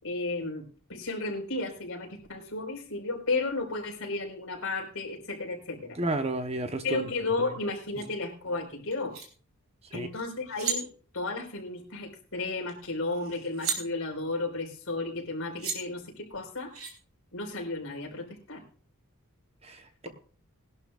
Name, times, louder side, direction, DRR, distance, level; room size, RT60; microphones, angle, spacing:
voice 1, 0.0-6.0 6.8-9.2 9.9-10.9 11.1-16.7 17.3-18.6, left 3 dB, 65° left, 1 dB, 4.6 m, -33 dB
voice 2, 6.0-7.0 9.9-10.1 19.6-20.1, right 2 dB, 30° right, 8 dB, 1.0 m, -31 dB
sound 1, 8.0-8.1 8.9-9.3 10.2-10.3 10.5-10.8 12.7-12.8 13.1-13.8 15.2-15.3 15.6-15.8 16.7-16.9, right 5 dB, 75° right, 3.6 m, -33 dB
20.5 x 11.5 x 2.5 m, 0.41 s
head